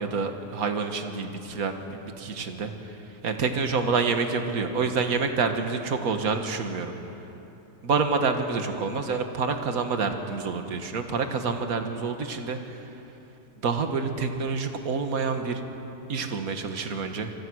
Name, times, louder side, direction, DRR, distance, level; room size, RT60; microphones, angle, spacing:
voice 1, 0.0-3.0 3.2-6.9 7.8-12.8 13.6-15.6 16.1-17.3, right 4 dB, 55° right, 6 dB, 2.0 m, -28 dB
26.5 x 26.0 x 6.4 m, 3.0 s
omnidirectional pair, 1.8 m